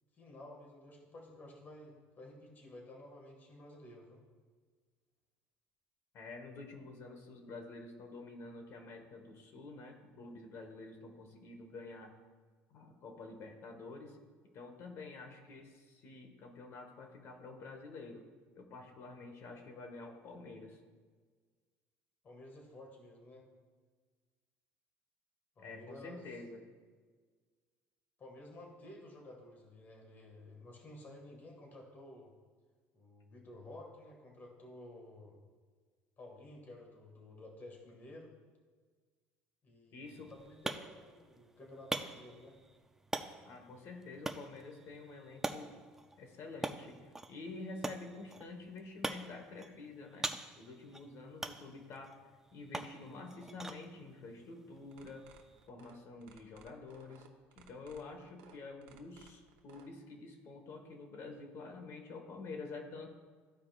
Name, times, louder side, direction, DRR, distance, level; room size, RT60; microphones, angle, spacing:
voice 1, 0.1-4.2 22.2-23.4 25.6-26.4 28.2-32.3 32.9-35.4 36.2-38.3 39.6-42.6 51.4-51.6, left 1 dB, 35° left, 0 dB, 1.8 m, -53 dB
voice 2, 6.1-12.1 12.7-14.2 14.5-18.3 18.5-20.8 25.6-26.6 39.9-40.3 43.4-45.8 46.2-50.3 50.6-52.1 52.5-55.3 55.7-57.3 57.5-63.1, left 3 dB, 50° left, 4 dB, 1.4 m, -48 dB
sound 1, 40.1-55.7, right 2 dB, 10° right, 0.4 m, -45 dB
sound 2, 54.9-59.9, right 9 dB, 90° right, 1.0 m, -60 dB
14.0 x 4.8 x 2.4 m, 1.5 s
cardioid pair, 125°, 6 cm